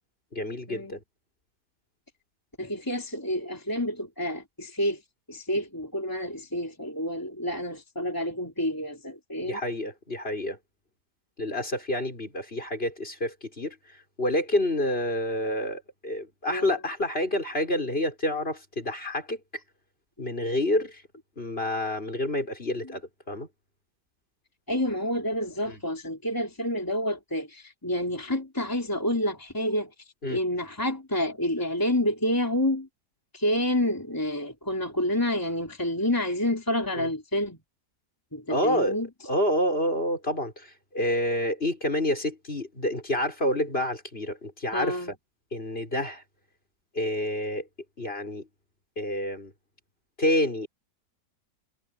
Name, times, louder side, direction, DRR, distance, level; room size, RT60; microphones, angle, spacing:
voice 1, 0.3-1.0 9.4-10.6 11.4-13.8 14.2-19.4 20.2-21.0 21.4-23.5 25.7-25.8 30.2-30.4 36.9-37.1 38.5-39.0 39.2-45.2 45.5-46.2 46.9-47.7 48.0-48.5 49.0-49.5 50.2-50.7, left 1 dB, 35° left, 6.6 m, -28 dB
voice 2, 2.6-5.0 5.3-9.6 16.5-16.8 22.8-22.9 24.7-29.9 30.3-32.9 33.3-37.6 38.3-39.1 44.7-45.1, left 1 dB, 10° left, 3.3 m, -29 dB
omnidirectional pair, 1.8 m